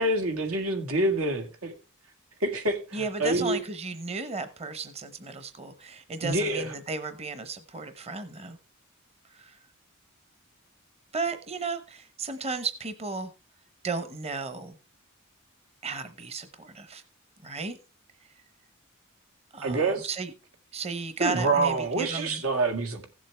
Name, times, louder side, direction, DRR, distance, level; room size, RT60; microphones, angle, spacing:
voice 1, 0.0-1.7 2.4-3.6 6.2-6.7 19.6-20.1 21.2-23.1, right 2 dB, 90° right, 2.0 m, -27 dB
voice 2, 2.9-8.6 9.4-9.6 11.1-13.3 13.8-14.8 15.8-17.0 17.4-17.8 19.5-20.3 20.7-22.4, right 4 dB, 30° right, 0.9 m, -34 dB
16.0 x 7.4 x 3.4 m
head